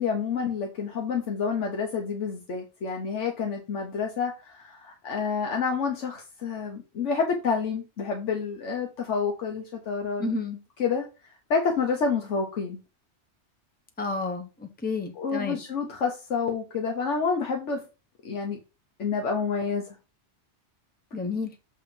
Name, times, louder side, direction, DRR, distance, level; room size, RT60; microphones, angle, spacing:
voice 1, 0.0-10.3 10.8-11.1 11.5-12.8 15.2-17.8 18.2-18.6 19.0-20.0, left 5 dB, 90° left, 1.4 m, -28 dB
voice 2, 10.2-10.6 14.0-15.6 21.1-21.5, left 3 dB, 10° left, 0.9 m, -31 dB
8.0 x 2.9 x 5.2 m
omnidirectional pair, 1.2 m